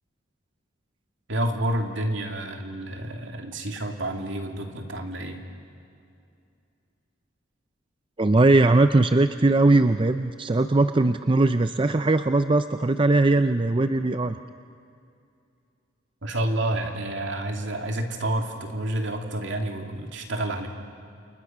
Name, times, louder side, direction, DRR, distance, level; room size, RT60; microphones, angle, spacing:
voice 1, 1.3-5.4 16.2-20.7, right 1 dB, 65° right, 3 dB, 2.8 m, -29 dB
voice 2, 8.2-14.4, right 2 dB, 25° right, 10 dB, 0.5 m, -20 dB
30.0 x 28.5 x 6.1 m, 2.5 s
head